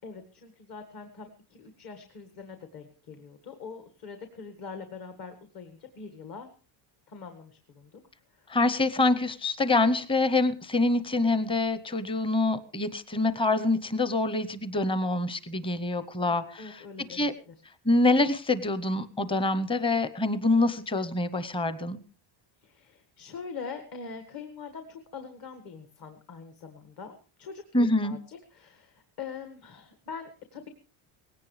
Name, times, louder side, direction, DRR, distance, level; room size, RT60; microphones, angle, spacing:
voice 1, 0.0-6.5 7.1-8.0 8.3-8.5 16.3-17.5 22.6-30.7, left 5 dB, 45° left, 7 dB, 1.9 m, -43 dB
voice 2, 8.5-16.8 17.1-17.3 17.8-22.0 27.7-28.2, left 2 dB, 10° left, 13 dB, 0.8 m, -26 dB
19.0 x 17.0 x 3.3 m, 0.36 s
cardioid pair, 145°, 49 cm